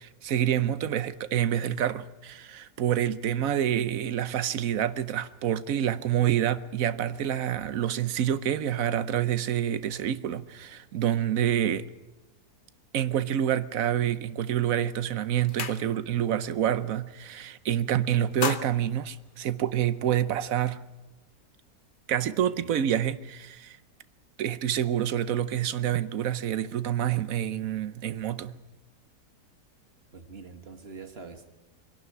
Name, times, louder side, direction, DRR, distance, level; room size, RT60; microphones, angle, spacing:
voice 1, 0.0-11.8 12.9-20.8 22.1-23.8 24.4-28.6, right 10 dB, 60° right, 1.2 m, -27 dB
sound 1, 14.6-14.8 15.1-16.3 16.6-16.9 17.2-17.8 18.1-20.0, left 5 dB, 40° left, 0.8 m, -36 dB
voice 2, 30.1-31.5, right 4 dB, 40° right, 1.6 m, -44 dB
23.5 x 11.5 x 9.7 m
omnidirectional pair, 1.7 m